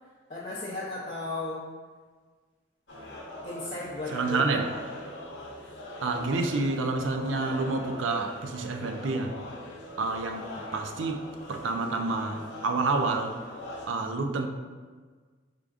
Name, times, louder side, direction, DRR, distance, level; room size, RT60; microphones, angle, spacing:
voice 1, 0.3-1.7 3.4-4.8, left 2 dB, 35° left, -7 dB, 0.6 m, -35 dB
sound 1, 2.9-13.9, left 1 dB, 65° left, 0.8 m, -42 dB
voice 2, 4.1-4.6 6.0-9.3 10.0-11.2 11.5-13.4 13.9-14.5, right 3 dB, 75° right, 5 dB, 0.4 m, -28 dB
4.8 x 3.7 x 2.3 m, 1.5 s
head